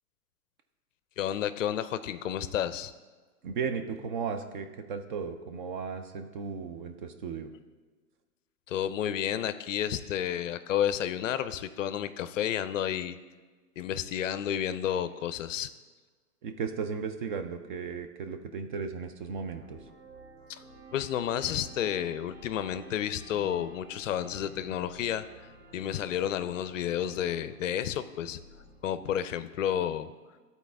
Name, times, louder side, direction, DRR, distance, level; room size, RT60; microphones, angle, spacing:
voice 1, 1.2-2.9 8.7-13.2 13.8-15.7 20.9-28.4 28.8-30.1, left 10 dB, 60° left, 13 dB, 0.5 m, -31 dB
voice 2, 3.4-7.5 16.4-19.8, right 6 dB, 35° right, 7 dB, 0.4 m, -35 dB
sound 1, 19.3-29.1, right 2 dB, 75° right, 1.6 m, -51 dB
12.0 x 4.1 x 3.5 m, 1.4 s
hypercardioid pair, 125°, 46 cm